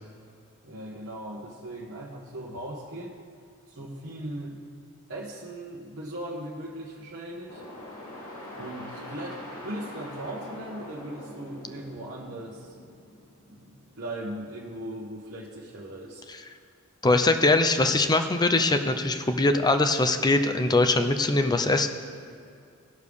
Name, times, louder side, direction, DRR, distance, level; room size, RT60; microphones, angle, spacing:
voice 1, 0.6-3.1 3.7-4.6 5.1-7.7 8.6-12.7 13.5-16.5, right 1 dB, 55° right, -6 dB, 1.2 m, -38 dB
sound 1, 7.5-14.9, left 1 dB, 75° left, 2.9 m, -44 dB
voice 2, 17.0-21.9, left 2 dB, 20° left, 8 dB, 0.5 m, -22 dB
17.0 x 6.6 x 3.5 m, 2.3 s
head